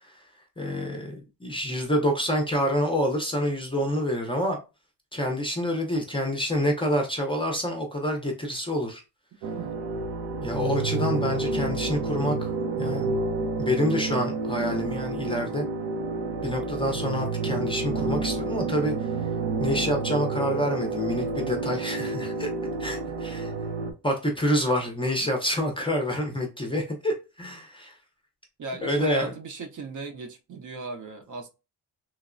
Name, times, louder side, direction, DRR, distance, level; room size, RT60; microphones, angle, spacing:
voice 1, 0.6-4.6 5.1-9.0 10.4-12.5 12.8-13.1 13.6-15.7 16.4-18.9 19.6-22.5 22.8-23.5 24.0-27.9 28.8-29.3, equal, 15° left, 0.5 m, -27 dB
sound 1, 9.4-23.9, right 3 dB, 90° right, 0.6 m, -29 dB
voice 2, 22.8-23.1 28.6-31.5, right 2 dB, 45° right, 0.5 m, -37 dB
3.0 x 2.0 x 2.4 m
cardioid pair, 125°, 42 cm